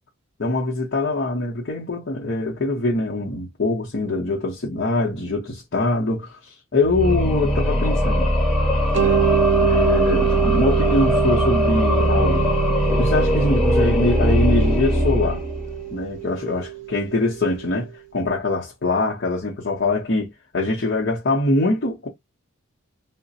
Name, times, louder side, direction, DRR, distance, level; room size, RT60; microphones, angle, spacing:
voice 1, 0.4-8.3 9.0-9.2 9.6-12.5 12.9-15.4 15.9-22.1, left 2 dB, 50° left, 0.8 m, -23 dB
sound 1, 6.8-15.9, left 1 dB, 5° left, 1.5 m, -20 dB
Mallet percussion, 8.9-17.7, right 12 dB, 55° right, 0.6 m, -25 dB
2.4 x 2.1 x 4.0 m
head